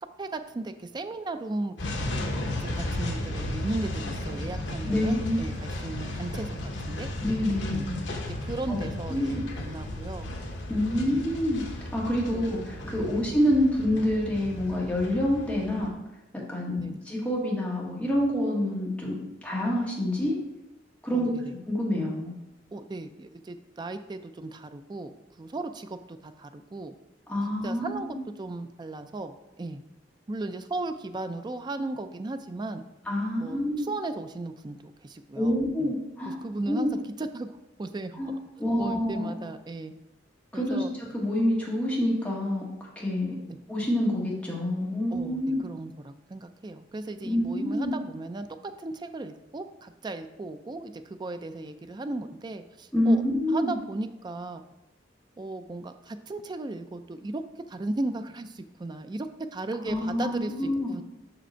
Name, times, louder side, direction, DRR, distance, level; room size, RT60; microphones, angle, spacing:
voice 1, 0.2-1.7 2.6-6.6 6.9-7.1 7.7-7.9 8.4-10.3 11.0-11.2 12.3-12.5 13.0-13.2 16.8-17.0 21.1-21.5 22.7-26.9 27.6-29.8 30.3-32.9 33.4-35.9 36.3-36.9 37.2-38.2 38.8-39.9 40.5-40.9 45.1-53.2 53.5-54.6 55.4-57.4 57.7-61.0, right 2 dB, 25° right, 9 dB, 0.4 m, -36 dB
sound 1, 1.8-15.9, left 1 dB, 75° left, 1.1 m, -34 dB
voice 2, 4.8-5.4 7.2-8.0 8.7-8.8 9.1-9.4 10.7-11.6 11.9-15.9 16.5-19.1 19.4-20.4 21.0-21.3 21.6-22.3 27.3-28.2 33.1-33.9 35.3-36.4 36.7-36.9 38.2-39.3 40.5-43.4 43.7-45.6 47.2-47.9 52.9-53.8 59.8-60.9, left 1 dB, 5° left, -5 dB, 1.6 m, -27 dB
5.8 x 5.0 x 4.4 m, 0.95 s
head